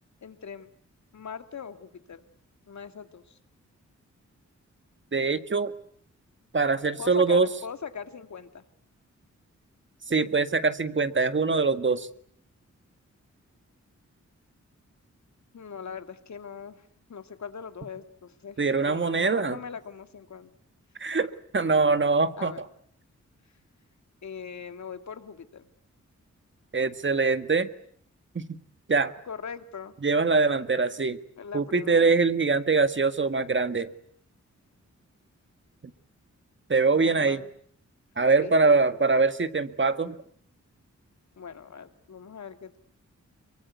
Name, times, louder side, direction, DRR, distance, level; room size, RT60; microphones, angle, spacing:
voice 1, 0.2-0.7 1.1-2.2 2.7-3.4 7.0-8.6 15.5-20.5 21.6-22.0 22.4-22.6 24.2-25.7 29.2-29.9 31.4-32.2 36.9-37.5 38.4-38.8 41.4-42.8, left 6 dB, 70° left, 8 dB, 2.4 m, -41 dB
voice 2, 5.1-5.7 6.5-7.5 10.1-12.1 18.6-19.6 21.0-22.5 26.7-27.7 28.4-28.5 28.9-29.1 30.0-31.2 31.5-33.9 36.7-37.4 38.2-40.2, right 4 dB, 40° right, 10 dB, 1.8 m, -23 dB
25.5 x 23.0 x 9.5 m, 0.64 s
cardioid pair, 70°, 29 cm